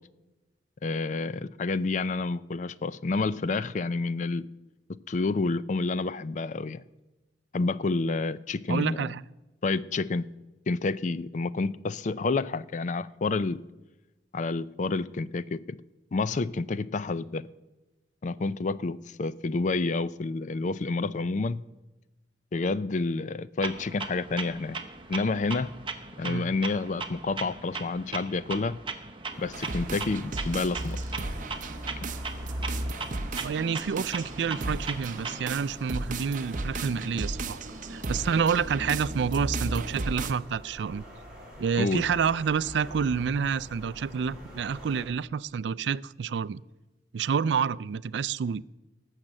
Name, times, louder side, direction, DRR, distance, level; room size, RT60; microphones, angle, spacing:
voice 1, 0.8-4.4 5.1-6.8 7.5-9.1 9.6-10.3 10.7-13.6 14.3-15.8 16.1-17.4 18.2-21.6 22.5-24.8 25.1-25.7 26.2-28.8 29.4-31.0 41.8-42.0, left 3 dB, 45° left, 17 dB, 0.4 m, -29 dB
voice 2, 8.7-9.2 26.3-26.5 33.4-37.6 37.9-41.0 41.6-46.6 47.1-48.6, right 6 dB, 75° right, 19 dB, 0.4 m, -28 dB
Clock, 23.6-35.6, right 4 dB, 30° right, 1.1 m, -39 dB
Traffic Verkehr elektrotram City Car, 29.3-45.0, equal, 5° right, 5.5 m, -47 dB
sound 1, 29.5-40.3, right 2 dB, 45° right, 0.8 m, -35 dB
18.0 x 6.6 x 7.5 m, 1.1 s
head